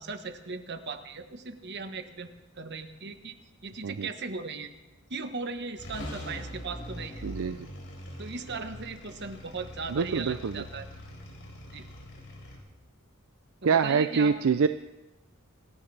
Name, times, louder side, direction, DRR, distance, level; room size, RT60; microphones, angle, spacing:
voice 1, 0.0-2.3 2.5-3.4 3.6-4.7 5.1-7.2 8.2-10.9 11.7-11.8 13.6-14.3, right 4 dB, 55° right, 8 dB, 1.2 m, -38 dB
sound 1, 5.4-5.5 5.8-12.6, left 1 dB, 60° left, 4.0 m, -42 dB
voice 2, 7.2-7.6 9.9-10.5 13.6-14.7, right 5 dB, 70° right, 11 dB, 0.5 m, -25 dB
26.0 x 13.0 x 3.4 m, 1.1 s
head